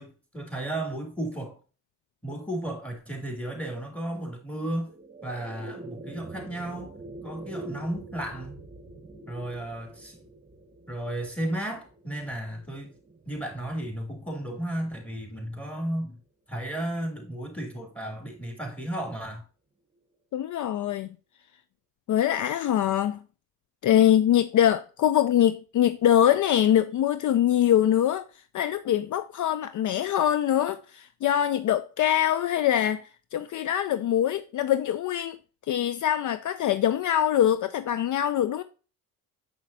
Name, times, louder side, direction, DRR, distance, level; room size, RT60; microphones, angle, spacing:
voice 1, 0.0-1.6 2.2-4.9 5.2-6.9 7.2-8.6 9.3-10.2 10.9-12.9 13.2-16.2 16.5-19.4, right 1 dB, 5° left, 2.7 m, -34 dB
sound 1, 4.5-15.0, right 2 dB, 20° right, 1.1 m, -45 dB
voice 2, 20.3-21.1 22.1-23.2 23.8-28.3 28.5-35.4 35.7-38.6, left 11 dB, 55° left, 0.5 m, -23 dB
6.9 x 5.9 x 2.7 m
cardioid pair, 70°, 35 cm